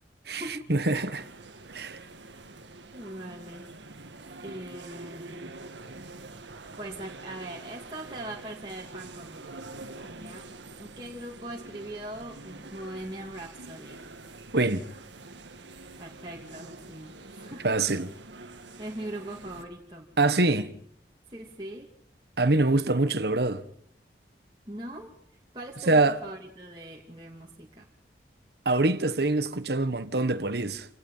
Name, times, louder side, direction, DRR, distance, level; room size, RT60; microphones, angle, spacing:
voice 1, 0.7-1.3 1.7-2.0 14.5-14.8 17.6-18.1 20.2-20.7 22.4-23.6 25.9-26.2 28.6-30.9, right 2 dB, 65° right, 1.4 m, -24 dB
sound 1, 0.8-19.6, right 3 dB, 90° right, 1.8 m, -46 dB
voice 2, 2.9-3.6 4.4-5.5 6.8-9.6 10.0-10.5 10.8-14.0 16.0-17.8 18.8-20.1 21.3-21.9 24.7-25.1 25.5-27.9, right 1 dB, 25° right, 2.7 m, -41 dB
29.0 x 18.5 x 5.7 m
head